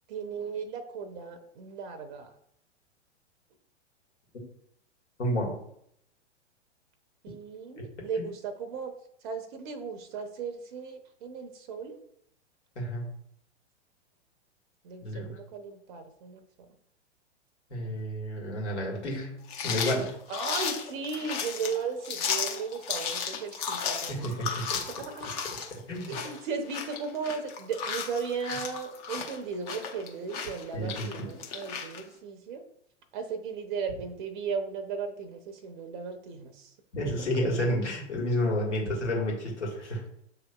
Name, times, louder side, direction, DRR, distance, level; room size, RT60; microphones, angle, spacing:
voice 1, 0.1-2.3 7.2-8.9 9.2-12.0 14.8-16.4 20.3-24.4 24.7-25.3 26.1-32.6 33.1-36.7, right 5 dB, 45° right, 8 dB, 0.6 m, -36 dB
voice 2, 5.2-5.5 12.8-13.1 15.0-15.4 17.7-20.2 24.1-24.7 25.7-26.2 30.7-31.3 36.9-40.0, equal, 70° left, -1 dB, 1.7 m, -30 dB
sound 1, 19.5-32.0, left 6 dB, 35° left, 0.8 m, -34 dB
7.2 x 2.8 x 2.3 m, 0.71 s
figure-of-eight pair, 110°, 35 cm